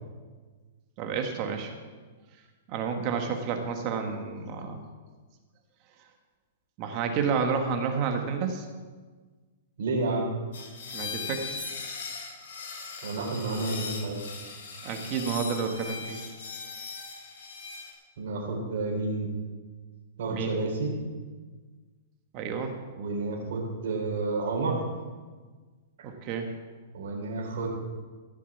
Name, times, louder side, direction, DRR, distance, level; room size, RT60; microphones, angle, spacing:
voice 1, 1.0-1.7 2.7-4.8 6.8-8.6 10.9-11.5 14.8-16.2 20.3-20.6 22.3-22.7 26.0-26.5, right 6 dB, 35° right, 4 dB, 1.6 m, -30 dB
voice 2, 9.8-10.3 13.0-14.2 18.2-19.3 20.2-20.9 23.0-24.8 26.9-27.7, right 3 dB, 70° right, -2 dB, 3.7 m, -30 dB
sound 1, 10.5-17.9, left 5 dB, 70° left, 4.5 m, -39 dB
15.5 x 7.1 x 7.2 m, 1.4 s
hypercardioid pair, 150°, 0 cm